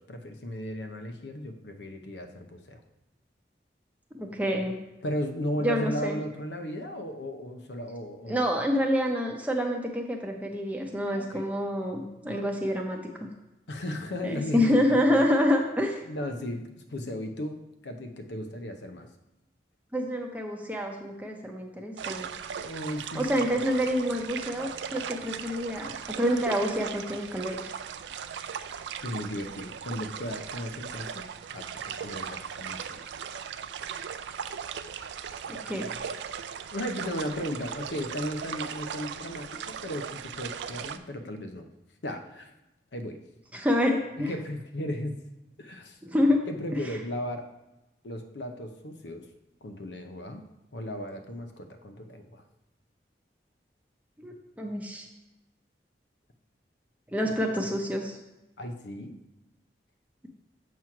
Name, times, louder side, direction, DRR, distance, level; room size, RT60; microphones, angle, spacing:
voice 1, 0.0-2.8 5.0-8.4 11.1-11.4 12.2-12.5 13.7-15.2 16.0-19.1 22.6-23.6 29.0-31.3 31.5-31.7 32.0-33.0 36.7-41.6 42.0-42.5 42.9-43.2 44.2-45.2 45.6-46.0 46.5-47.5 48.0-49.3 49.6-50.4 50.7-52.4 58.6-59.1, left 1 dB, 85° left, 6 dB, 0.8 m, -35 dB
voice 2, 4.1-4.8 5.6-6.2 8.3-13.0 14.2-16.0 19.9-22.3 23.1-27.7 35.5-35.9 43.5-44.3 46.0-46.4 54.2-55.1 57.1-58.2, equal, 10° right, 1 dB, 0.7 m, -27 dB
sound 1, 22.0-41.0, right 7 dB, 85° right, 0.4 m, -38 dB
7.5 x 3.1 x 5.8 m, 0.96 s
head